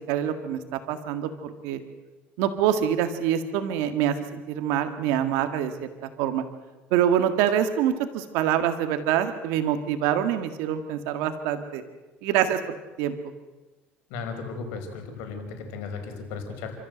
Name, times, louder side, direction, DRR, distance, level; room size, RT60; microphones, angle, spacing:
voice 1, 0.1-0.6 0.9-1.8 2.4-6.4 6.9-11.8 12.2-12.6 13.0-13.2, right 10 dB, 90° right, 8 dB, 1.9 m, -25 dB
voice 2, 14.1-16.8, left 4 dB, 90° left, 5 dB, 4.9 m, -35 dB
29.5 x 14.5 x 8.0 m, 1.2 s
cardioid pair, 135°, 5 cm